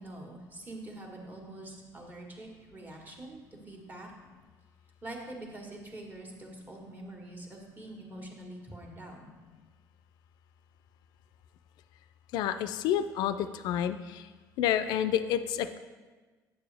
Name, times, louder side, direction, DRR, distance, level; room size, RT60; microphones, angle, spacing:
voice 1, 0.0-4.1 5.0-9.3, right 2 dB, 25° right, 0 dB, 1.6 m, -45 dB
voice 2, 12.3-14.3 14.6-15.8, left 10 dB, 80° left, 11 dB, 0.4 m, -29 dB
9.0 x 6.9 x 3.4 m, 1.3 s
cardioid pair, 110°, 7 cm